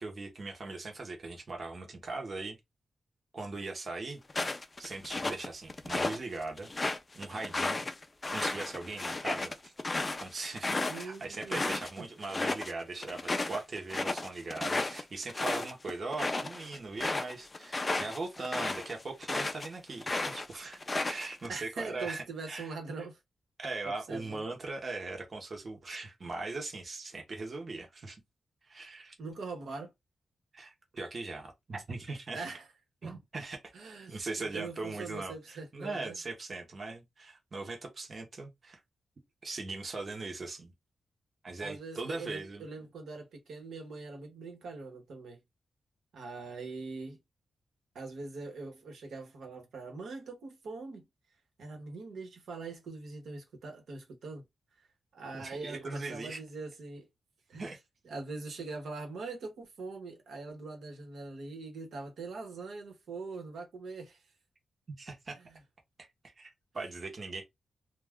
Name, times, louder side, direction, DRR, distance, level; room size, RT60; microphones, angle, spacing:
voice 1, 0.0-2.6 3.3-4.5 4.8-6.7 7.1-7.9 8.3-9.7 10.2-22.7 23.6-28.2 28.7-29.1 30.5-32.4 33.0-33.6 34.1-38.8 39.4-40.7 41.4-42.7 55.3-56.4 57.6-57.8 65.0-65.4 66.0-67.4, right 3 dB, 35° right, 0.8 m, -40 dB
sound 1, 4.3-6.2 6.6-11.9 12.2-12.7 13.0-19.7 20.0-21.5, left 2 dB, 20° left, 0.3 m, -33 dB
voice 2, 10.9-11.6 21.5-23.2 23.8-24.4 29.2-29.9 32.3-32.7 33.0-33.1 33.7-36.2 41.6-45.4 46.1-47.2 47.9-51.1 51.6-54.4 54.8-54.9 55.1-57.1 57.5-57.7 58.0-64.2 65.4-65.6, right 3 dB, 85° right, 1.0 m, -42 dB
2.3 x 2.2 x 3.5 m
wide cardioid pair, 155°, 0 cm